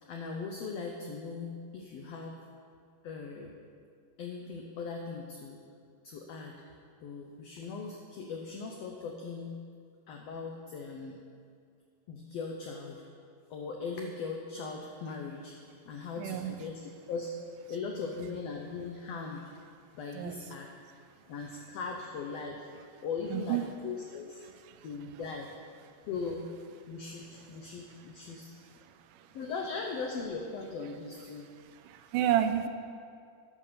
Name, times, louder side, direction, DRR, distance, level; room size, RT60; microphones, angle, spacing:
voice 1, 0.0-2.4 3.0-3.6 4.2-5.6 6.0-6.6 7.0-9.6 10.1-11.2 12.1-13.0 13.5-15.6 15.8-17.4 17.7-19.5 19.9-20.7 21.3-22.7 23.0-24.4 24.8-25.5 26.1-26.5 26.9-28.5 29.3-31.5, left 4 dB, 85° left, 1 dB, 1.4 m, -39 dB
voice 2, 16.2-16.5 20.1-20.4 23.3-23.6 24.7-24.9 29.1-29.3 31.8-32.7, right 11 dB, 85° right, 9 dB, 2.2 m, -30 dB
11.0 x 4.8 x 6.8 m, 2.2 s
omnidirectional pair, 3.7 m